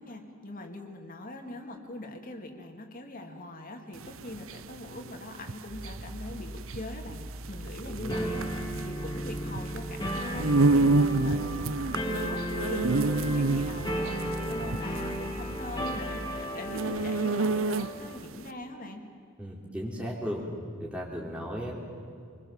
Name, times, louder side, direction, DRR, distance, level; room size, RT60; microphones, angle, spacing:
voice 1, 0.0-8.4 8.8-19.0, left 1 dB, 45° left, 3 dB, 2.6 m, -42 dB
sound 1, 4.0-18.2, right 3 dB, 75° right, 0.7 m, -28 dB
sound 2, 5.7-16.5, equal, 35° right, 1.9 m, -42 dB
voice 2, 7.8-8.4 19.4-20.4 20.8-21.7, equal, 5° right, -3 dB, 3.3 m, -36 dB
sound 3, 8.1-18.2, equal, 20° left, 2.6 m, -35 dB
27.0 x 21.5 x 7.4 m, 2.4 s
head